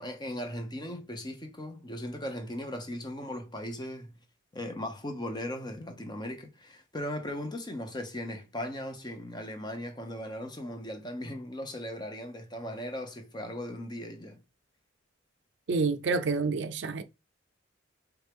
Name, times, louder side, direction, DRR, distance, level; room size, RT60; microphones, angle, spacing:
voice 1, 0.0-4.1 4.5-14.4, left 1 dB, 20° left, 0.8 m, -38 dB
voice 2, 15.7-17.0, right 4 dB, 60° right, 0.5 m, -28 dB
4.4 x 3.4 x 3.5 m
head